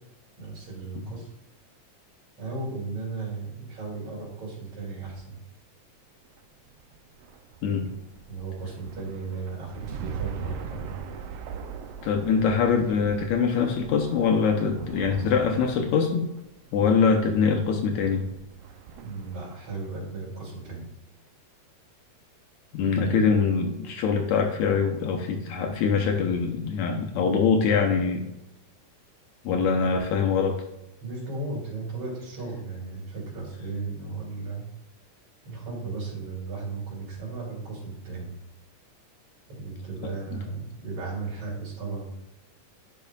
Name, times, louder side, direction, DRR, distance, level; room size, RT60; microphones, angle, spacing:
voice 1, 0.4-1.3 2.4-5.4 7.7-7.9 8.3-11.0 19.0-20.9 22.9-23.4 31.0-34.7 35.4-38.3 39.5-42.1, right 3 dB, 60° right, -5 dB, 4.0 m, -35 dB
sound 1, 6.2-19.8, right 7 dB, 90° right, 1.3 m, -41 dB
voice 2, 12.0-16.3 16.7-18.3 22.7-28.2 29.5-30.6 40.3-40.4, left 5 dB, 75° left, 3 dB, 2.1 m, -23 dB
10.5 x 5.7 x 2.4 m, 0.90 s
omnidirectional pair, 3.5 m